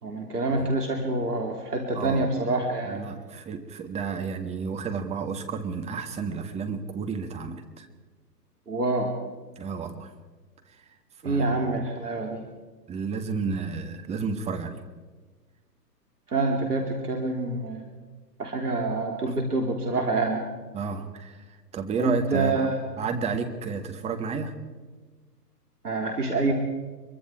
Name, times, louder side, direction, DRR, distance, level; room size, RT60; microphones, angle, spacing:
voice 1, 0.0-3.0 8.7-9.1 11.2-12.4 16.3-17.8 18.4-20.4 22.0-22.8 25.8-26.5, right 2 dB, 70° right, 3 dB, 3.3 m, -26 dB
voice 2, 1.9-2.3 2.8-7.9 9.6-10.1 11.2-11.5 12.9-14.8 19.2-19.4 20.7-21.4 21.7-22.7 23.0-24.5, right 5 dB, 15° right, 6 dB, 1.6 m, -31 dB
24.0 x 23.5 x 4.9 m, 1.3 s
figure-of-eight pair, 120°, 49 cm